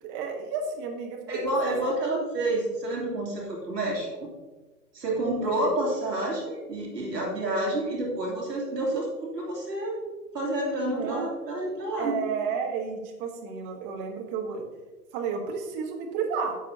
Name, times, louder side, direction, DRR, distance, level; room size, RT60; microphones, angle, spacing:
voice 1, 0.0-1.9 5.4-5.7 10.9-11.3 12.0-14.6 15.1-16.6, right 5 dB, 20° right, 2 dB, 1.1 m, -32 dB
voice 2, 1.3-4.3 4.9-9.9 10.3-12.2, right 1 dB, 75° right, -3 dB, 3.0 m, -29 dB
11.5 x 7.4 x 2.7 m, 1.3 s
figure-of-eight pair, 120°, 50 cm